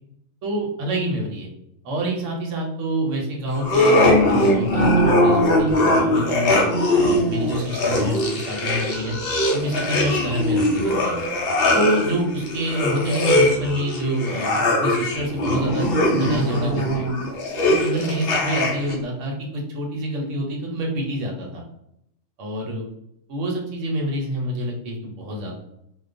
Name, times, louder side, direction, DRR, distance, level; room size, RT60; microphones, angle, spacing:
voice 1, 0.4-1.5 1.8-6.6 7.0-9.1 9.5-11.3 11.7-17.1 17.7-21.6 22.4-22.8 23.3-25.5, right 1 dB, 70° right, 0 dB, 1.0 m, -27 dB
sound 1, 3.6-19.0, left 1 dB, 60° left, 0.6 m, -21 dB
2.4 x 2.2 x 2.5 m, 0.77 s
omnidirectional pair, 1.4 m